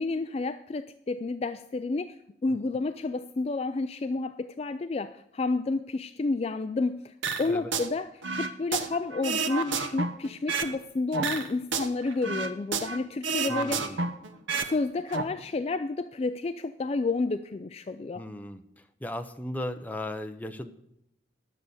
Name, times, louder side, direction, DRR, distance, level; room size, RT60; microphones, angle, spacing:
voice 1, 0.0-7.1 7.4-8.1 8.3-14.0 14.5-18.2, left 3 dB, 30° left, 11 dB, 0.3 m, -30 dB
sound 1, 7.2-7.9 8.2-10.8 11.1-13.0 13.2-14.7 15.0-15.2, right 4 dB, 80° right, 1.0 m, -30 dB
voice 2, 13.5-14.0 18.1-20.7, left 1 dB, 10° left, 7 dB, 0.7 m, -37 dB
11.0 x 6.9 x 7.8 m, 0.81 s
head